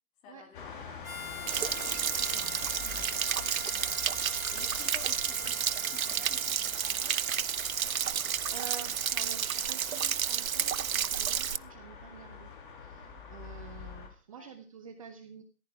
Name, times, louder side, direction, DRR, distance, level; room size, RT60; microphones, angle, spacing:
voice 1, 0.2-0.9 3.7-4.0 4.4-7.2 14.3-14.5, left 6 dB, 15° left, 4 dB, 2.5 m, -52 dB
sound 1, 0.5-14.1, left 6 dB, 35° left, 3.1 m, -47 dB
Harmonica, 1.0-11.3, left 5 dB, 75° left, 1.5 m, -46 dB
Stream / Splash splatter / Trickle dribble, 1.5-11.6, right 8 dB, 70° right, 0.6 m, -31 dB
voice 2, 1.6-3.1 3.4-3.5 8.5-15.4, right 7 dB, 25° right, 9 dB, 0.9 m, -49 dB
14.5 x 10.5 x 4.8 m, 0.36 s
figure-of-eight pair, 140°, 42 cm